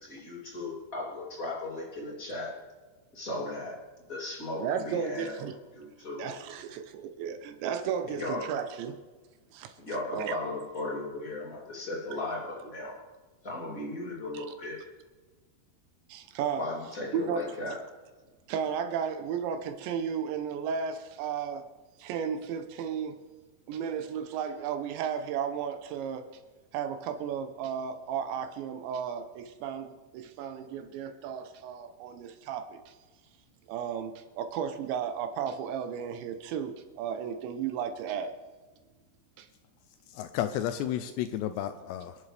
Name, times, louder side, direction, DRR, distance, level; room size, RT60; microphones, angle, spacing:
voice 1, 0.0-2.6 3.1-3.8 4.1-5.3 5.7-6.3 8.2-8.5 9.8-13.0 13.4-14.8 16.6-17.8, left 2 dB, 20° left, 2.7 m, -36 dB
voice 2, 4.6-5.6 6.2-9.0 9.5-9.7 10.1-10.4 14.3-14.5 16.1-16.7 17.1-17.4 18.5-21.7 22.0-23.1 23.7-26.2 26.7-32.8 33.7-38.4, right 7 dB, 80° right, 3.1 m, -34 dB
voice 3, 40.1-42.2, left 11 dB, 80° left, 2.7 m, -32 dB
28.0 x 11.0 x 3.4 m
omnidirectional pair, 5.2 m